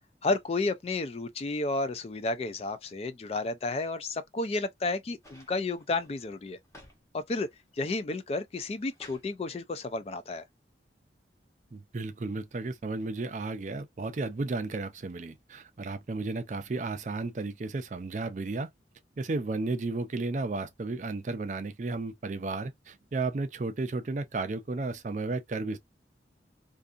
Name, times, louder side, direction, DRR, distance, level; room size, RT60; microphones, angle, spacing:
voice 1, 0.2-6.6 7.1-7.5 7.7-10.4, left 3 dB, 35° left, 0.3 m, -32 dB
sound 1, 5.2-7.0 7.4-7.9 8.4-9.3 10.5-10.6, left 1 dB, 15° left, 1.0 m, -55 dB
voice 2, 11.7-18.7 19.2-25.8, right 3 dB, 40° right, 0.4 m, -33 dB
2.6 x 2.5 x 2.3 m
head